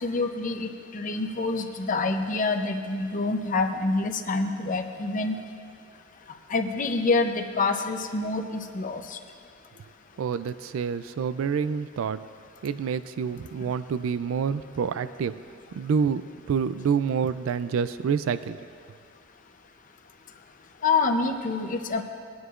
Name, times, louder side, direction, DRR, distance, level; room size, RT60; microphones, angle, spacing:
voice 1, 0.0-5.3 6.5-9.2 20.8-22.0, left 3 dB, 40° left, 5 dB, 0.6 m, -27 dB
voice 2, 10.2-12.2 12.6-15.4 15.7-18.6, right 6 dB, 90° right, 13 dB, 0.3 m, -27 dB
21.0 x 9.5 x 2.5 m, 2.2 s
head